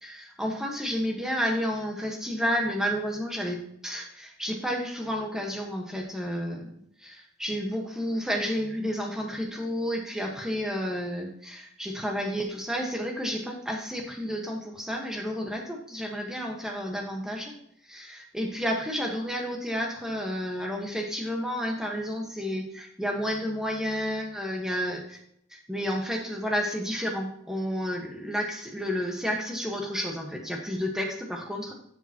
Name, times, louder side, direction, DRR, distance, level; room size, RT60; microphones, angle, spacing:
voice 1, 0.0-6.7 7.0-17.5 17.9-25.2 25.5-31.7, equal, ahead, 0 dB, 1.3 m, -31 dB
12.0 x 6.9 x 2.9 m, 0.72 s
head